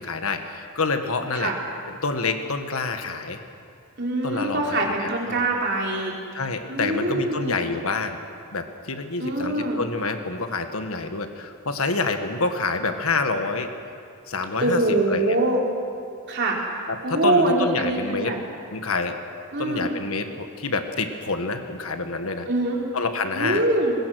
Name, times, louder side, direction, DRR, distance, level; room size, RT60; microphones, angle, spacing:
voice 1, 0.0-1.5 1.9-3.4 4.2-5.5 6.3-8.2 8.5-13.7 14.3-14.8 15.1-15.2 16.9-18.3 18.7-19.1 19.6-22.5 22.9-23.6, left 3 dB, 75° left, 7 dB, 1.6 m, -27 dB
voice 2, 4.0-6.1 6.7-7.6 9.2-9.8 14.6-15.6 16.3-16.6 17.0-18.4 19.5-19.9 22.5-22.8 23.3-23.9, right 2 dB, 50° right, -2 dB, 3.7 m, -23 dB
23.0 x 20.0 x 6.3 m, 2.5 s
head